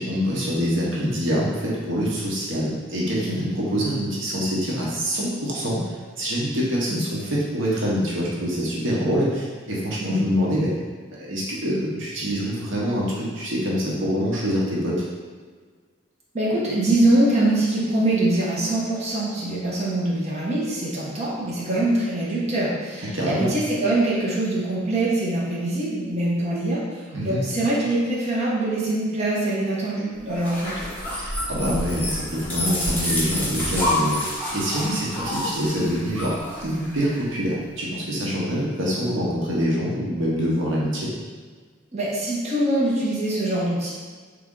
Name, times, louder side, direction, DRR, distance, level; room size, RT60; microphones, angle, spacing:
voice 1, 0.0-5.8 6.2-10.7 11.1-15.1 23.1-23.5 27.1-27.4 31.1-36.3 36.6-41.1, equal, 70° right, -5 dB, 0.9 m, -25 dB
voice 2, 16.3-30.8 41.9-43.9, right 1 dB, 35° right, -7 dB, 0.9 m, -23 dB
sound 1, 30.3-37.2, left 1 dB, 10° left, 1.2 m, -28 dB
3.5 x 3.4 x 3.8 m, 1.5 s
head